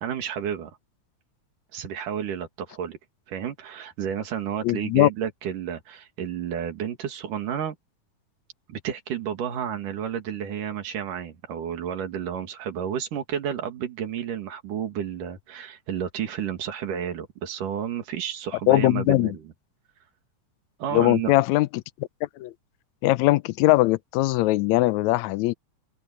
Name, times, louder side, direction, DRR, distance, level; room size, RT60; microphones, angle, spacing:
voice 1, 0.0-0.8 1.7-3.0 3.3-7.8 8.7-19.4 20.8-21.3, right 9 dB, 85° right, 3.8 m, -31 dB
voice 2, 4.6-5.1 18.7-19.3 20.9-21.8 22.4-22.5 23.0-25.5, left 18 dB, 75° left, 1.8 m, -20 dB
omnidirectional pair, 3.6 m